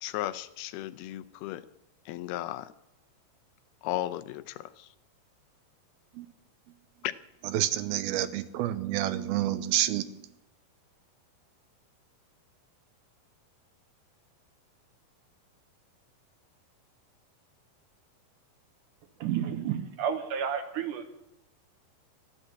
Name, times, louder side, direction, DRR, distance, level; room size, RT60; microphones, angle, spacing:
voice 1, 0.0-1.7 2.1-2.7 3.8-4.9 7.0-7.1, left 15 dB, 90° left, 14 dB, 2.6 m, -35 dB
voice 2, 7.4-10.3, right 13 dB, 85° right, 12 dB, 2.6 m, -29 dB
voice 3, 19.2-21.0, right 8 dB, 70° right, 8 dB, 2.3 m, -31 dB
14.0 x 11.5 x 7.7 m, 0.91 s
omnidirectional pair, 4.3 m